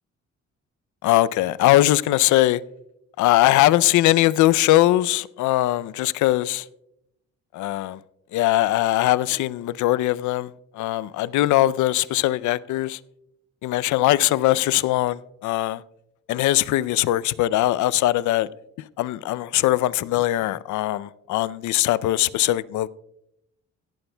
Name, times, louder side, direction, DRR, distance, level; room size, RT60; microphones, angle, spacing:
voice 1, 1.0-2.6 3.2-6.7 7.5-8.0 8.3-13.0 13.6-15.8 16.3-18.5 18.8-22.9, left 15 dB, 75° left, 0.5 m, -21 dB
17.0 x 11.5 x 2.2 m
cardioid pair, 90°, 30 cm